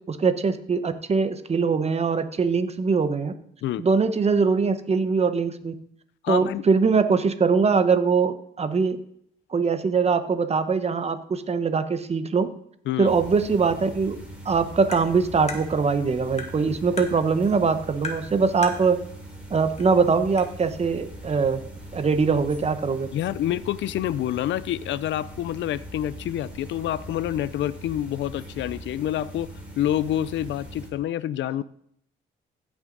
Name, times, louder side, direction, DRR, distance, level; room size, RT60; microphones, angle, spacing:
voice 1, 0.1-3.3 3.8-5.7 6.3-9.0 9.5-12.5 13.0-14.2 14.4-19.0 19.5-21.6 21.9-23.1, right 5 dB, 30° right, 10 dB, 0.9 m, -22 dB
voice 2, 6.2-6.6 12.9-13.2 23.1-29.5 29.8-31.6, left 12 dB, 70° left, 17 dB, 0.5 m, -27 dB
sound 1, 13.0-30.9, right 1 dB, 5° right, 3.6 m, -41 dB
Tap, 14.9-15.0 15.5-15.6 16.4-16.5 17.0-17.1 18.0-18.2 18.6-18.8 19.8-19.9 20.4-20.5, left 4 dB, 35° left, 1.8 m, -33 dB
15.0 x 6.2 x 4.0 m, 0.69 s
cardioid pair, 90°, 20 cm